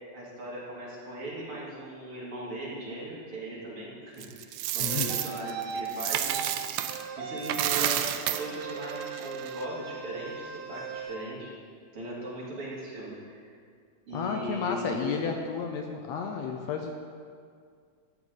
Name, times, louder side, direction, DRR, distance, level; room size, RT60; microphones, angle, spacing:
voice 1, 0.1-6.4 7.2-11.5 11.9-13.5 14.1-15.2, right 1 dB, 45° right, -7 dB, 3.1 m, -38 dB
Coin (dropping), 4.2-7.0 7.4-9.6, right 11 dB, 80° right, 1.5 m, -31 dB
voice 2, 4.8-5.2 14.1-16.9, left 6 dB, 75° left, 3 dB, 1.8 m, -32 dB
sound 1, 4.8-5.9 6.3-6.5 6.9-7.9 8.3-11.2, right 6 dB, 65° right, 1.7 m, -39 dB
13.5 x 9.6 x 3.9 m, 2.1 s
omnidirectional pair, 3.4 m